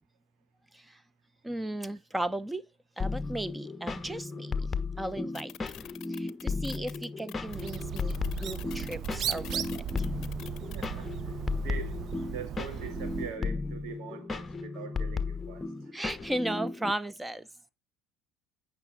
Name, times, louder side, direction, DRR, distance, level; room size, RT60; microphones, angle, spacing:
voice 1, 1.4-2.6 3.0-4.6 5.0-5.7 6.1-9.6 15.9-17.5, right 1 dB, 10° right, 0.7 m, -35 dB
sound 1, 3.0-16.9, left 4 dB, 20° left, 1.1 m, -35 dB
sound 2, 5.3-10.9, left 14 dB, 55° left, 0.7 m, -47 dB
Bird, 7.4-13.4, right 10 dB, 50° right, 0.5 m, -37 dB
voice 2, 10.7-12.0 12.3-15.6, right 6 dB, 65° right, 2.5 m, -43 dB
9.3 x 5.9 x 3.8 m
supercardioid pair, 95°, 0 cm